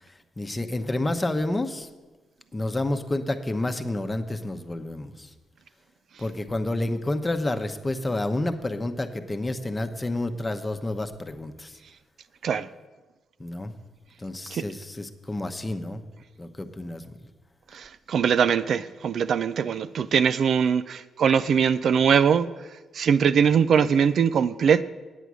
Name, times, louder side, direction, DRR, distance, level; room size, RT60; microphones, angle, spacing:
voice 1, 0.4-1.9 2.5-5.3 6.2-11.8 13.4-13.7 14.2-16.0 16.4-17.1, left 2 dB, 25° left, 8 dB, 0.9 m, -29 dB
voice 2, 17.7-22.5 22.9-24.8, right 7 dB, 65° right, 13 dB, 0.4 m, -21 dB
9.2 x 8.1 x 6.2 m, 1.2 s
supercardioid pair, 60°, 0 cm